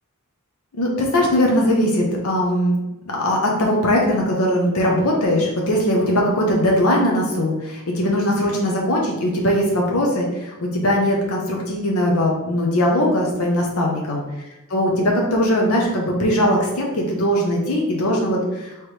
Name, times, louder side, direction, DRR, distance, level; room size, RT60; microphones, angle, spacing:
voice 1, 0.8-2.8 3.1-18.7, equal, 85° left, -1 dB, 0.9 m, -20 dB
4.5 x 3.2 x 3.3 m, 1.0 s
head